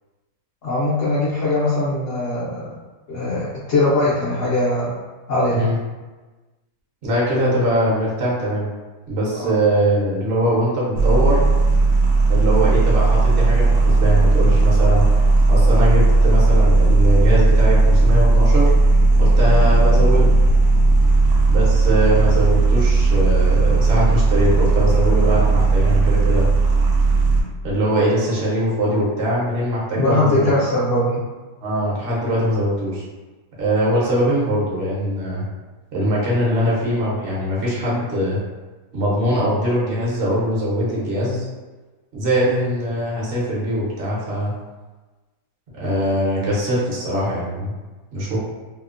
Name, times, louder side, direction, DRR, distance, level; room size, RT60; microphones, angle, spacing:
voice 1, 0.6-2.7 3.1-4.9 5.3-5.7 9.3-9.5 28.1-28.2 29.9-31.2, left 2 dB, 65° left, -9 dB, 0.8 m, -21 dB
voice 2, 7.0-8.7 9.1-11.4 12.3-15.0 15.5-18.7 19.2-20.3 21.5-26.5 27.6-30.5 31.6-33.0 33.6-35.4 35.9-38.4 38.9-41.4 42.1-44.5 45.7-47.7 48.1-48.4, equal, 55° right, -6 dB, 0.7 m, -21 dB
sound 1, 11.0-27.4, right 3 dB, 80° right, 1.1 m, -15 dB
2.8 x 2.0 x 2.4 m, 1.2 s
omnidirectional pair, 1.8 m